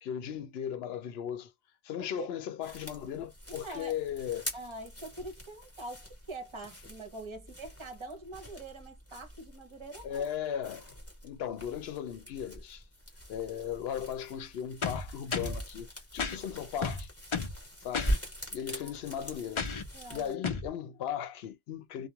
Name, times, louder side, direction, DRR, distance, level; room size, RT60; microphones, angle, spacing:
voice 1, 0.0-1.5 1.8-4.5 10.0-10.9 11.2-12.8 13.3-17.1 17.8-18.1 18.5-19.7 20.1-22.1, left 9 dB, 75° left, 0.8 m, -37 dB
voice 2, 2.0-2.3 3.5-4.0 4.5-10.3 18.8-18.9 19.9-20.4, right 2 dB, 30° right, 0.9 m, -44 dB
sound 1, 2.6-20.3, equal, 15° left, 1.2 m, -43 dB
sound 2, 14.8-15.6 16.2-16.4 16.8-17.6 17.9-18.2 19.6-19.9 20.4-20.7, left 5 dB, 40° left, 0.5 m, -33 dB
3.0 x 2.2 x 2.3 m
omnidirectional pair, 1.0 m